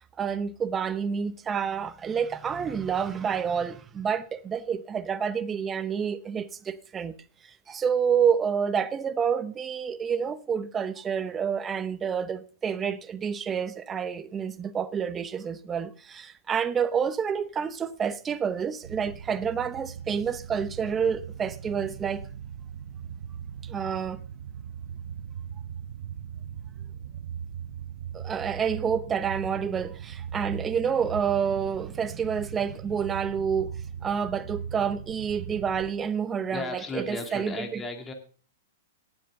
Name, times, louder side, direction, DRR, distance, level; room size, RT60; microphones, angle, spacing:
voice 1, 0.2-7.2 7.4-22.2 23.6-24.2 28.1-33.7 34.0-37.8, right 7 dB, 20° right, 0.8 m, -28 dB
sound 1, 18.8-35.9, right 8 dB, 70° right, 0.7 m, -39 dB
voice 2, 36.5-38.1, left 3 dB, 15° left, 2.5 m, -35 dB
19.0 x 7.7 x 3.7 m
hypercardioid pair, 140°, 0 cm